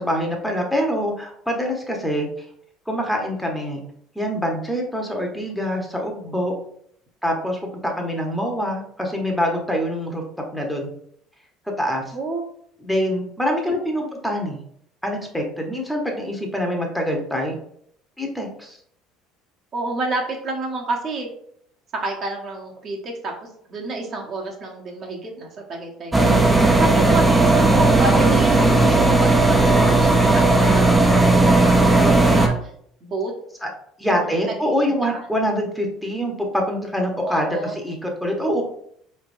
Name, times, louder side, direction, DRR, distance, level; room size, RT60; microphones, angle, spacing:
voice 1, 0.0-2.3 2.9-3.8 4.1-6.5 7.2-10.2 10.5-10.9 11.8-12.1 12.8-14.6 15.0-17.6 18.2-18.8 26.2-26.4 33.6-33.7 34.0-38.6, equal, 5° left, 1 dB, 0.9 m, -25 dB
voice 2, 19.7-21.3 21.9-23.3 23.7-26.4 26.8-31.3 31.6-32.5 33.0-33.3 34.1-35.2 37.2-37.8, right 3 dB, 45° right, 1 dB, 1.0 m, -29 dB
sound 1, 26.1-32.5, right 2 dB, 10° right, 0.6 m, -15 dB
4.4 x 3.3 x 2.6 m, 0.67 s
supercardioid pair, 80°, 0 cm